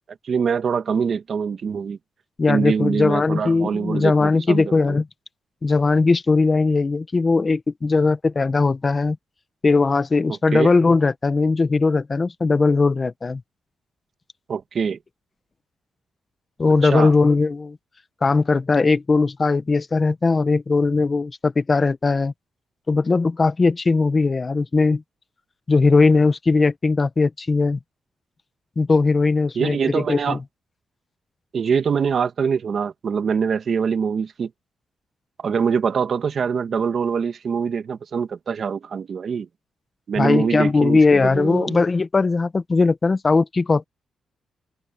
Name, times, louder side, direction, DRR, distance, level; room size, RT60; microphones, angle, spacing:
voice 1, 0.2-2.0 2.5-5.0 10.3-10.7 14.5-15.0 16.8-17.1 29.5-30.4 31.5-34.5 35.4-39.5 40.1-41.8, right 6 dB, 45° right, 1.6 m, -24 dB
voice 2, 2.4-5.1 5.6-9.2 9.6-13.4 16.6-17.8 18.2-22.3 22.9-25.0 25.7-27.8 28.8-30.4 40.2-43.8, left 3 dB, 25° left, 0.8 m, -19 dB
wide cardioid pair, 145°, 0 cm